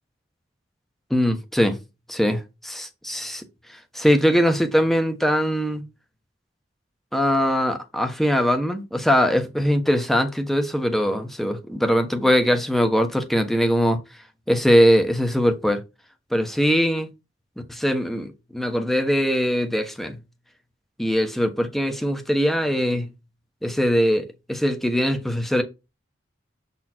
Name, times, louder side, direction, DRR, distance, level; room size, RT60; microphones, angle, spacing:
voice 1, 1.1-1.8 2.1-3.4 3.9-5.8 7.1-14.0 14.5-15.8 16.3-17.1 17.7-20.2 21.0-23.1 23.6-25.6, equal, ahead, 1.0 m, -21 dB
7.3 x 4.3 x 4.4 m
head